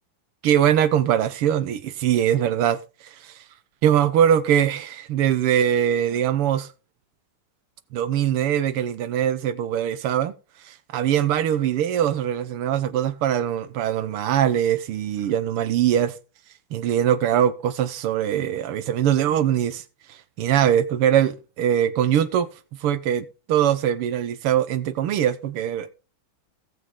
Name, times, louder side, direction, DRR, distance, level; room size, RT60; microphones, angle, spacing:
voice 1, 0.4-2.8 3.2-3.3 3.8-6.7 7.9-10.3 10.7-16.1 16.7-19.8 20.4-22.5 22.8-25.9, right 10 dB, 85° right, 1.8 m, -22 dB
17.0 x 6.2 x 3.7 m
omnidirectional pair, 2.4 m